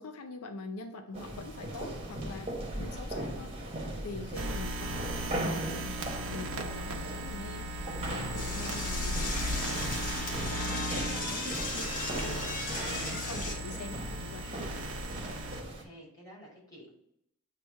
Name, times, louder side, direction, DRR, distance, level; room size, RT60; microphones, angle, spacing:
voice 1, 0.0-6.0 6.3-7.7 8.0-9.7 10.0-14.5, left 2 dB, 90° left, 7 dB, 0.6 m, -44 dB
sound 1, 1.1-15.8, right 1 dB, 25° right, 1.1 m, -39 dB
sound 2, 4.3-15.6, right 1 dB, 65° right, 0.8 m, -37 dB
Door / Toilet flush, 8.3-13.6, left 3 dB, 40° left, 1.1 m, -36 dB
voice 2, 14.5-14.8 15.6-16.9, equal, 15° left, -5 dB, 2.3 m, -50 dB
7.7 x 2.9 x 4.6 m, 0.74 s
head